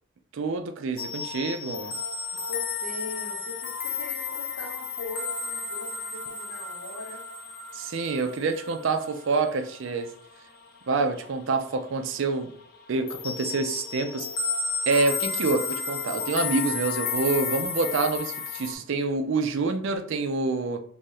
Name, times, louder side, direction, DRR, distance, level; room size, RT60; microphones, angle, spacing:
voice 1, 0.3-1.9 7.7-10.1 10.9-12.5 12.9-14.3 14.9-20.8, right 3 dB, 60° right, 0.4 m, -27 dB
sound 1, 1.0-11.4 11.6-12.0 12.3-18.7, left 5 dB, 45° left, 0.5 m, -33 dB
voice 2, 2.5-7.2, left 2 dB, 65° left, 1.2 m, -41 dB
2.8 x 2.5 x 4.0 m
head